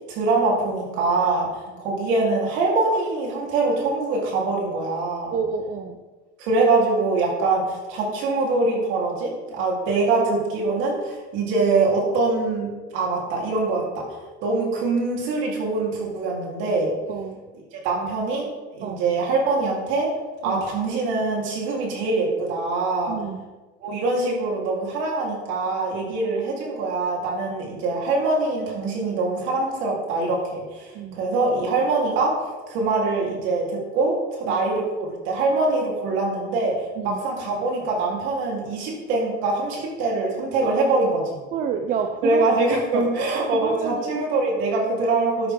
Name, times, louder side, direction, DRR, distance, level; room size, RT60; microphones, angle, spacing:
voice 1, 0.1-5.4 6.4-14.1 14.4-16.9 17.7-20.1 20.4-23.1 23.8-32.3 32.7-36.7 37.0-41.3 42.2-45.5, right 3 dB, 65° right, -2 dB, 4.1 m, -23 dB
voice 2, 5.3-6.0 17.1-17.5 18.8-19.0 20.4-20.6 23.1-23.5 26.1-26.2 30.9-31.2 32.8-32.9 34.5-34.6 37.0-37.2 40.6-40.9 41.5-42.5 42.9-43.1 43.3-44.2, right 7 dB, 40° right, 6 dB, 0.7 m, -29 dB
13.5 x 9.0 x 3.9 m, 1.2 s
cardioid pair, 145°, 21 cm